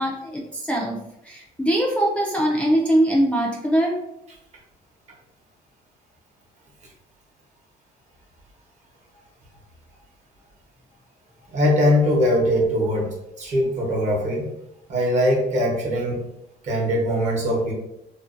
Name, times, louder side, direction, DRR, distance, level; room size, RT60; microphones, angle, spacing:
voice 1, 0.0-4.0, right 1 dB, 5° left, -3 dB, 0.3 m, -22 dB
voice 2, 11.5-13.1 13.4-14.5 14.9-16.2 16.6-17.7, equal, 45° right, -2 dB, 0.9 m, -21 dB
2.5 x 2.2 x 2.4 m, 0.84 s
cardioid pair, 110°, 17 cm